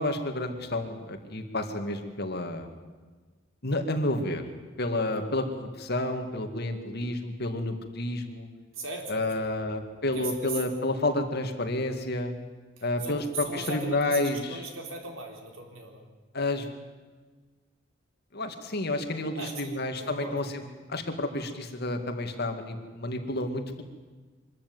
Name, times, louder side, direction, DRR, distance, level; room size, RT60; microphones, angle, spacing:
voice 1, 0.0-2.7 3.6-4.4 4.8-8.5 9.1-12.3 12.8-14.6 16.3-16.7 18.3-20.4 20.9-23.8, left 2 dB, 55° left, 6 dB, 2.2 m, -30 dB
voice 2, 8.7-9.4 10.1-10.6 12.8-16.0 19.3-20.4, right 3 dB, 80° right, 2 dB, 4.1 m, -39 dB
24.0 x 13.5 x 9.5 m, 1.4 s
head